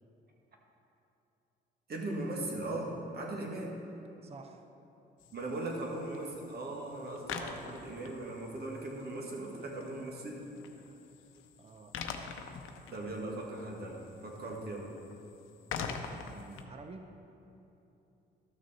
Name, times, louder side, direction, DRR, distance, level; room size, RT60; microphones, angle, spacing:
voice 1, 1.9-3.7 5.3-10.4 12.9-14.9, right 2 dB, 50° right, -1 dB, 1.8 m, -39 dB
voice 2, 4.2-4.6 10.8-11.1 11.6-12.0 16.0-17.2, right 3 dB, 30° right, 6 dB, 0.6 m, -50 dB
sound 1, 5.2-16.6, left 6 dB, 85° left, 0.7 m, -45 dB
12.5 x 6.3 x 4.2 m, 2.9 s
cardioid pair, 90°, 20 cm